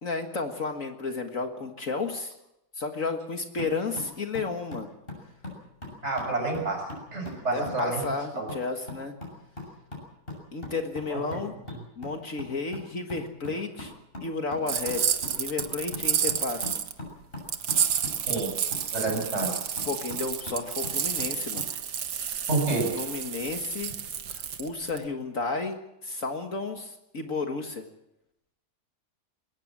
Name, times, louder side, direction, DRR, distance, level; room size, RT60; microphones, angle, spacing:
voice 1, 0.0-2.4 2.8-4.9 7.5-9.1 10.5-11.5 12.0-13.9 14.2-16.6 19.9-21.7 22.9-23.9 24.3-27.8, left 4 dB, 50° left, 5 dB, 2.0 m, -32 dB
sound 1, 3.6-21.7, left 2 dB, 30° left, 7.2 m, -42 dB
voice 2, 6.0-8.0 8.4-8.5 11.1-11.2 18.3-18.5 18.9-19.7 22.5-23.0, right 3 dB, 40° right, 2 dB, 6.9 m, -29 dB
sound 2, 14.7-16.9 17.5-25.0, right 8 dB, 85° right, 1.8 m, -30 dB
21.5 x 18.5 x 7.5 m, 0.87 s
omnidirectional pair, 1.8 m